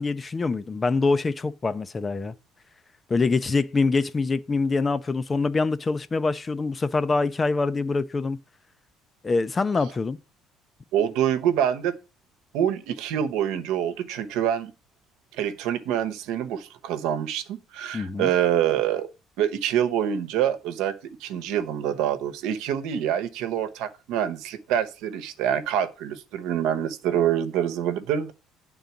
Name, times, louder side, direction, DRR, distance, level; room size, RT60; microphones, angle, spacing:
voice 1, 0.0-2.3 3.1-8.4 9.2-10.2 17.9-18.3, left 3 dB, 20° left, 0.5 m, -24 dB
voice 2, 10.9-12.0 12.5-14.7 15.3-19.1 19.4-28.3, right 10 dB, 80° right, 1.0 m, -26 dB
9.3 x 3.9 x 7.0 m
cardioid pair, 155°, 0 cm